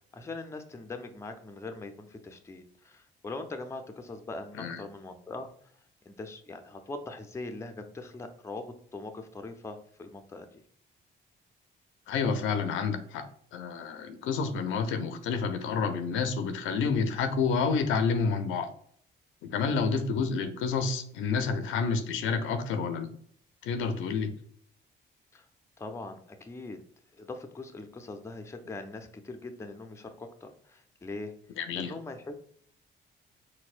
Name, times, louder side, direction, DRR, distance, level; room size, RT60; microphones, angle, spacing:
voice 1, 0.1-5.7 6.1-10.6 19.8-20.0 25.3-25.5 25.8-26.8 27.1-31.3 31.7-32.4, left 2 dB, 15° left, 6 dB, 0.4 m, -41 dB
voice 2, 12.1-13.2 13.5-18.7 19.4-23.1 23.6-24.3 31.6-31.9, left 5 dB, 85° left, 9 dB, 0.5 m, -29 dB
4.2 x 2.1 x 2.4 m, 0.62 s
cardioid pair, 90°, 20 cm